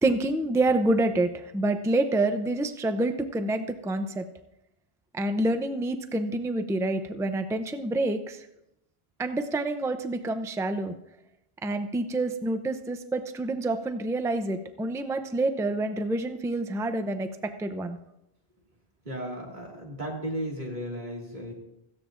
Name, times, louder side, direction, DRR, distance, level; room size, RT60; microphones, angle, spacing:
voice 1, 0.0-4.3 5.1-8.5 9.2-10.9 11.6-18.0, right 2 dB, 5° right, 9 dB, 0.4 m, -27 dB
voice 2, 19.0-21.5, equal, 50° right, -1 dB, 2.4 m, -35 dB
17.0 x 14.5 x 2.5 m, 0.87 s
omnidirectional pair, 1.0 m